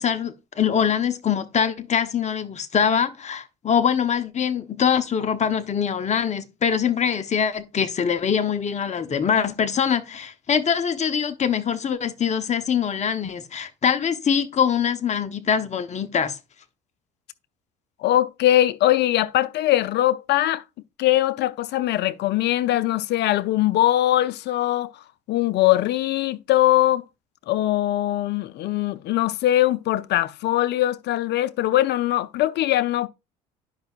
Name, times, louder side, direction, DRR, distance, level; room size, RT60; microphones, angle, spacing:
voice 1, 0.0-16.4, left 7 dB, 35° left, 0.9 m, -23 dB
voice 2, 18.0-20.6 21.0-24.9 25.3-27.0 27.5-33.1, left 14 dB, 55° left, 0.6 m, -21 dB
10.5 x 5.4 x 2.4 m
hypercardioid pair, 60°, 21 cm